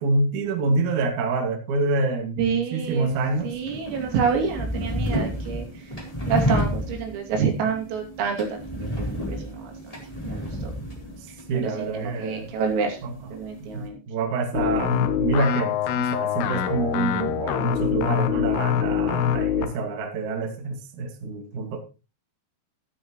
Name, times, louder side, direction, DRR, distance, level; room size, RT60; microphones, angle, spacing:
voice 1, 0.0-3.6 11.5-12.5 13.0-13.1 13.7-21.8, right 3 dB, 50° right, 2.8 m, -27 dB
voice 2, 2.4-3.1 3.4-5.9 6.3-9.7 10.3-10.7 11.5-13.0 13.3-14.0, right 6 dB, 85° right, 5.5 m, -28 dB
sound 1, 2.8-13.9, equal, 10° left, 2.8 m, -31 dB
sound 2, 14.5-19.8, left 10 dB, 75° left, 2.6 m, -24 dB
13.5 x 12.5 x 3.1 m
omnidirectional pair, 5.8 m